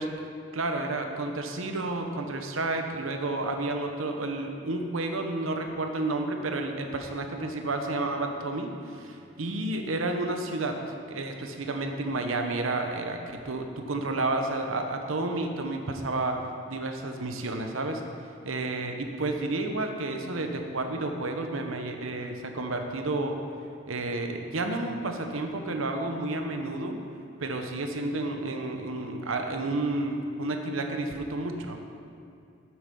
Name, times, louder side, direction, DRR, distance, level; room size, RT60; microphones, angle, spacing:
voice 1, 0.5-10.8 11.1-16.4 16.7-18.0 18.4-23.4 23.9-27.0 27.4-31.8, right 2 dB, 90° right, 5 dB, 0.9 m, -31 dB
7.9 x 7.8 x 5.3 m, 2.5 s
head